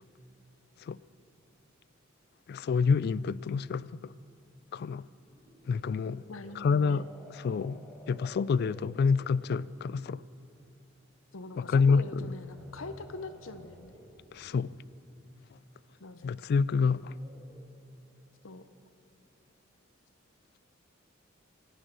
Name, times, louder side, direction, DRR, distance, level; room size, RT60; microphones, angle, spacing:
voice 1, 2.5-4.1 4.7-5.0 5.7-6.2 6.6-7.0 7.3-10.2 11.6-12.3 14.3-14.7 16.2-17.1, left 5 dB, 55° left, 0.3 m, -28 dB
sound 1, 5.2-10.2 11.9-15.0 16.7-17.8, equal, ahead, 1.6 m, -54 dB
voice 2, 6.3-7.0 11.3-14.0 16.0-16.5 18.4-18.6, left 3 dB, 85° left, 0.8 m, -43 dB
25.0 x 9.1 x 6.2 m
head